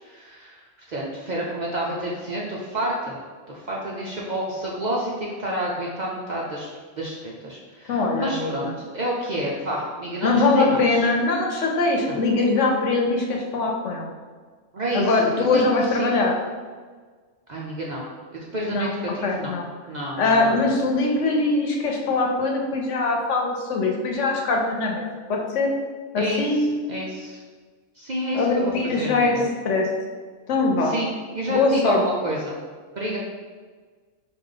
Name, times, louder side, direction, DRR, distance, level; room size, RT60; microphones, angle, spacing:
voice 1, 0.0-3.2 3.5-6.7 7.0-11.1 12.0-12.2 14.7-15.6 15.9-16.1 17.5-18.1 18.3-19.5 19.9-20.6 26.2-27.4 28.0-29.5 30.8-32.6 33.0-33.2, right 1 dB, 55° right, -4 dB, 0.5 m, -29 dB
voice 2, 7.9-8.7 10.2-14.1 14.9-16.3 18.7-18.9 19.2-19.7 20.2-25.7 26.1-26.8 28.3-29.4 29.6-29.9 30.5-31.0 31.5-32.0, left 3 dB, 75° left, 1 dB, 1.0 m, -22 dB
4.9 x 2.4 x 3.8 m, 1.5 s
omnidirectional pair, 1.3 m